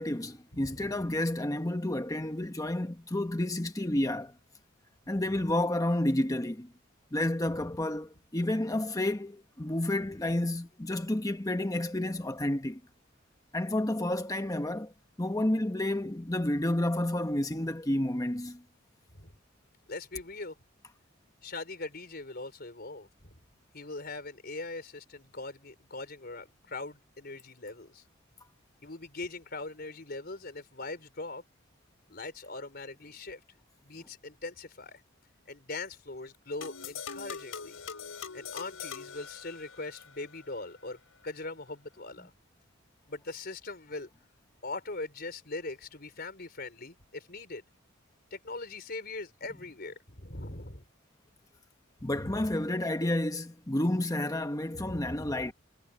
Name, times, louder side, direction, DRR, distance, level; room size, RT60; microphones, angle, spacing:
voice 1, 0.0-4.3 5.1-6.7 7.1-12.8 13.5-14.9 15.2-18.6 52.0-55.5, left 1 dB, 15° left, 1.0 m, -30 dB
voice 2, 0.5-0.9 7.6-7.7 19.1-19.3 19.9-20.6 21.4-23.3 23.7-28.0 28.8-31.4 32.1-33.4 33.8-35.0 35.5-37.8 38.3-41.0 41.2-42.3 43.1-44.1 44.6-47.6 48.3-50.8 52.0-52.5 54.7-55.4, left 2 dB, 50° left, 4.3 m, -41 dB
sound 1, 36.6-40.1, left 6 dB, 90° left, 5.1 m, -42 dB
head